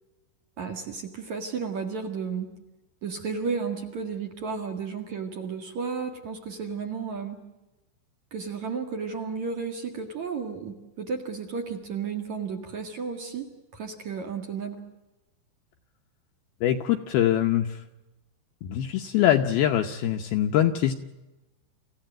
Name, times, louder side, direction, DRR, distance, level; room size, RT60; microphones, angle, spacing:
voice 1, 0.6-2.5 3.0-7.4 8.3-14.8, right 5 dB, 50° right, 4 dB, 2.5 m, -33 dB
voice 2, 16.6-17.8 18.6-20.9, left 11 dB, 75° left, 5 dB, 2.3 m, -23 dB
28.5 x 15.5 x 8.9 m, 1.1 s
omnidirectional pair, 5.3 m